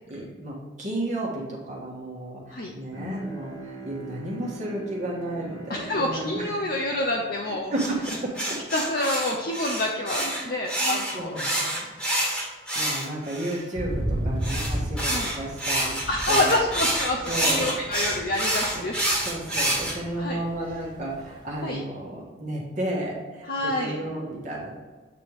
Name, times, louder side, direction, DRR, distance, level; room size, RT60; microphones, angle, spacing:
voice 1, 0.1-6.7 7.5-8.3 10.1-11.7 12.7-16.5 17.3-17.8 18.7-18.8 19.2-24.8, right 1 dB, 40° right, -4 dB, 1.3 m, -33 dB
Bowed string instrument, 2.9-8.4, right 2 dB, 20° left, 1.0 m, -41 dB
voice 2, 5.7-7.7 8.7-11.5 11.8-11.9 15.1-15.3 16.1-19.0 19.9-20.4 21.6-21.8 23.5-24.0, left 1 dB, 50° left, 0 dB, 0.6 m, -28 dB
sound 1, 7.8-13.6 14.4-19.9, right 1 dB, 5° left, 1.5 m, -27 dB
sound 2, 13.7-21.7, equal, 20° right, 1.5 m, -34 dB
8.2 x 3.5 x 4.6 m, 1.4 s
head